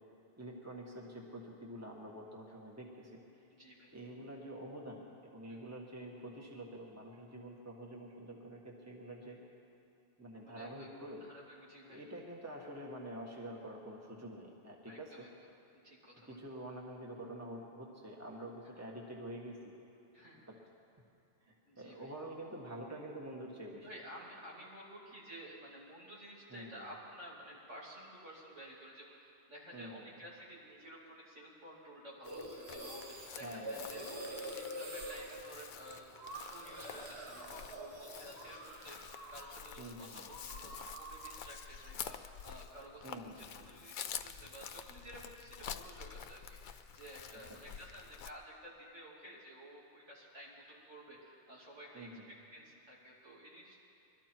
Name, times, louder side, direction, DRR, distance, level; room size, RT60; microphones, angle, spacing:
voice 1, 0.4-3.2 3.9-5.0 5.3-9.4 10.2-11.2 11.9-15.3 16.3-19.6 21.4-23.9 26.5-26.9 29.7-29.9 33.4-33.9 39.8-40.3 43.0-43.5 51.9-52.2, right 1 dB, 15° right, -1 dB, 1.5 m, -47 dB
voice 2, 3.5-3.9 5.5-5.7 10.3-10.9 11.2-12.0 14.8-15.3 15.8-16.4 20.1-20.5 21.7-22.1 23.8-36.1 36.4-52.1 52.5-53.8, right 1 dB, 80° right, -5 dB, 3.2 m, -53 dB
Chirp tweet, 32.2-48.3, left 8 dB, 55° left, 0.6 m, -49 dB
sound 1, 32.3-39.7 39.9-41.5, right 1 dB, 60° right, 1.9 m, -46 dB
22.0 x 13.0 x 4.5 m, 2.8 s
omnidirectional pair, 1.2 m